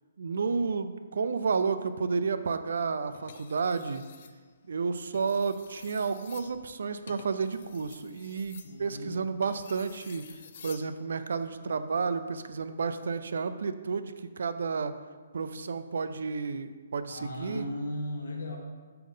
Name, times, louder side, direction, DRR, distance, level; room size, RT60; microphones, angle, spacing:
voice 1, 0.2-4.0 4.7-10.3 10.6-14.9 15.3-17.7, right 5 dB, 70° right, 11 dB, 0.4 m, -31 dB
sound 1, 3.1-4.4 5.0-10.9 12.4-12.6, left 7 dB, 45° left, 0.5 m, -51 dB
voice 2, 8.6-9.2 17.1-18.6, left 1 dB, 70° left, 1 dB, 1.5 m, -36 dB
5.7 x 5.0 x 5.5 m, 1.5 s
hypercardioid pair, 165°, 0 cm